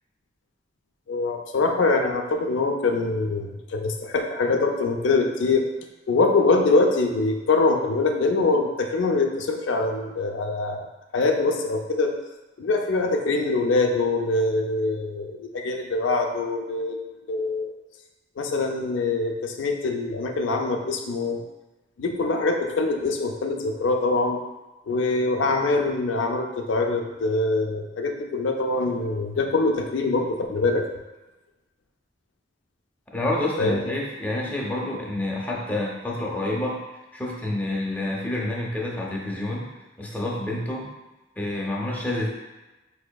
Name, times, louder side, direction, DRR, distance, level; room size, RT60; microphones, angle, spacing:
voice 1, 1.1-5.7 6.1-10.9 11.1-12.1 12.6-17.0 17.3-17.7 18.4-21.4 22.0-24.4 24.9-30.8 33.6-33.8, left 3 dB, 85° left, 3 dB, 0.4 m, -24 dB
voice 2, 33.1-36.8 37.1-39.7 40.0-40.9 41.4-42.3, left 1 dB, 10° left, -3 dB, 0.6 m, -28 dB
4.8 x 2.7 x 2.2 m, 1.1 s
head